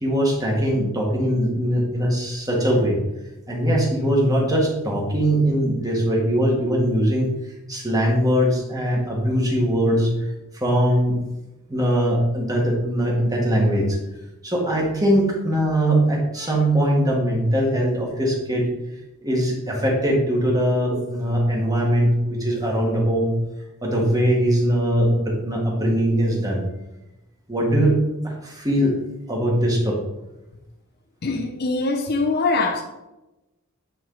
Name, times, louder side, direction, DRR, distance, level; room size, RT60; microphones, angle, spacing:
voice 1, 0.0-3.0 3.5-7.3 7.7-11.2 11.7-14.0 14.4-18.7 19.2-23.3 23.8-26.6 27.5-28.0 28.2-29.0 29.3-30.0, equal, 15° right, -2 dB, 1.7 m, -21 dB
voice 2, 31.2-32.8, left 3 dB, 50° left, 3 dB, 0.7 m, -23 dB
9.2 x 4.5 x 3.9 m, 0.97 s
head